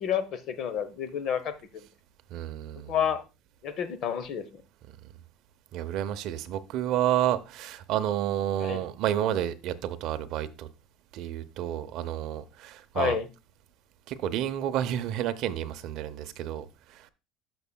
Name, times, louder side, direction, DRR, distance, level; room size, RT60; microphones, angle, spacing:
voice 1, 0.0-1.8 2.9-3.2 3.6-4.4 8.6-8.8 12.9-13.3, left 8 dB, 40° left, 0.9 m, -29 dB
voice 2, 2.3-2.9 5.7-10.7 11.1-13.2 14.1-17.1, right 11 dB, 50° right, 0.7 m, -30 dB
12.5 x 6.1 x 2.2 m
cardioid pair, 165°, 0 cm